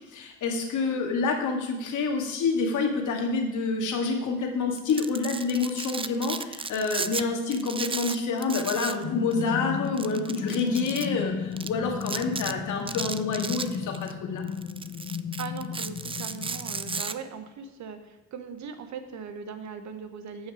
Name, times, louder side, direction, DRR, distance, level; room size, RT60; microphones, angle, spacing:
voice 1, 0.1-14.4, left 4 dB, 75° left, 2 dB, 2.2 m, -28 dB
Domestic sounds home sounds, 4.8-7.2 7.5-9.0 9.3-9.4 10.0-11.1 11.6-11.7 12.0-12.5 12.9-14.1 14.5-17.1, right 5 dB, 20° right, 0.4 m, -34 dB
sound 1, 9.0-17.0, left 8 dB, 45° left, 0.6 m, -35 dB
voice 2, 15.4-20.5, right 6 dB, 65° right, 8 dB, 1.3 m, -39 dB
14.5 x 5.9 x 4.9 m, 1.0 s
cardioid pair, 90°, 30 cm